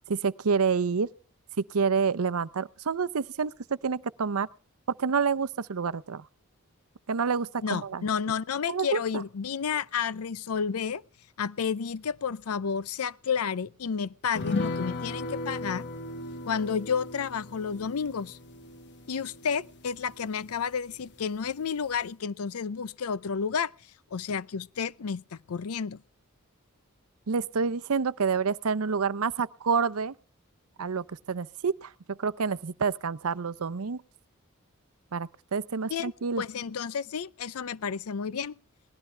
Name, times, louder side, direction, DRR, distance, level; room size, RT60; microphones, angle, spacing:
voice 1, 0.1-1.1 1.7-4.5 4.9-6.2 7.1-8.0 8.7-9.0 27.3-30.1 30.8-34.0 35.1-36.4, right 5 dB, 85° right, 0.7 m, -28 dB
voice 2, 7.6-11.0 11.4-15.9 16.4-18.4 19.1-23.7 24.1-26.0 35.9-36.1 36.4-38.5, left 6 dB, 90° left, 0.6 m, -31 dB
sound 1, 14.4-21.1 21.4-21.5 21.9-22.1, left 3 dB, 55° left, 1.1 m, -37 dB
19.0 x 14.0 x 3.4 m
head